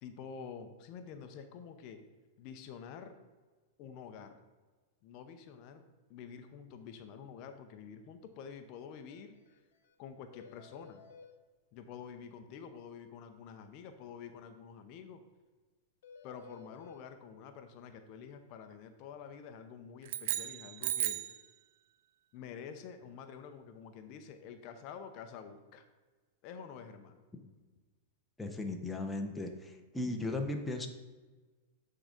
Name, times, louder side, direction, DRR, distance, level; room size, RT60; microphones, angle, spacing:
voice 1, 0.0-2.0 2.4-3.1 3.8-4.4 5.0-5.8 6.1-9.6 10.0-11.0 11.7-15.2 16.2-21.2 22.3-25.8 26.4-27.2, left 7 dB, 45° left, 7 dB, 0.6 m, -48 dB
sound 1, 9.1-9.2 9.5-9.6 9.8-9.9 10.3-11.3 16.0-17.0, left 5 dB, 80° left, 0.9 m, -54 dB
sound 2, 20.0-21.4, right 12 dB, 60° right, 0.4 m, -35 dB
voice 2, 28.4-30.9, left 2 dB, 5° left, 3 dB, 0.7 m, -36 dB
8.8 x 3.8 x 5.1 m, 1.3 s
supercardioid pair, 140°, 0 cm